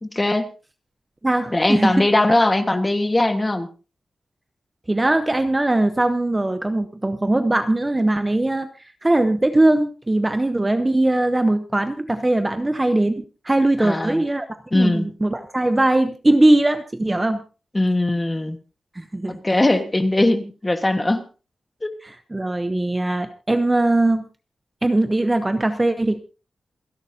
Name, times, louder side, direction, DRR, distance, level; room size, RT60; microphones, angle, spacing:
voice 1, 0.0-0.5 1.5-3.7 13.8-14.2 14.7-15.1 17.7-18.6 19.3-21.2 21.8-21.9, left 2 dB, 15° left, 7 dB, 1.5 m, -20 dB
voice 2, 1.2-2.1 4.9-8.7 9.0-14.5 14.7-17.4 19.0-19.4 22.3-24.2 24.8-26.2, right 2 dB, 15° right, 9 dB, 0.8 m, -20 dB
28.0 x 11.5 x 2.8 m, 0.34 s
wide cardioid pair, 165°, 0 cm